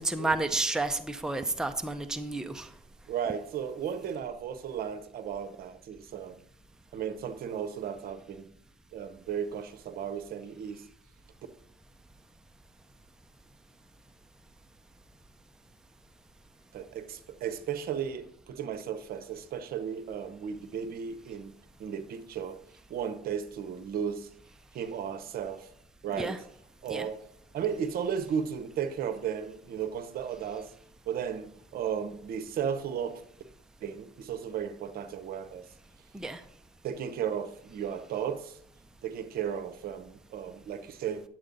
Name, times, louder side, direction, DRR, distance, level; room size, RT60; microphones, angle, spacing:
voice 1, 0.0-2.7 26.1-26.4 26.9-27.1 36.1-36.4, right 2 dB, 5° right, 0.6 m, -31 dB
voice 2, 3.1-6.4 6.9-8.5 8.9-10.8 16.7-21.5 21.8-22.6 22.9-24.3 24.7-25.7 26.0-26.4 26.8-27.2 27.5-30.7 31.1-33.2 33.8-35.6 36.8-38.6 39.0-41.2, right 8 dB, 60° right, 0.9 m, -35 dB
9.8 x 7.6 x 3.9 m
cardioid pair, 110°, 17 cm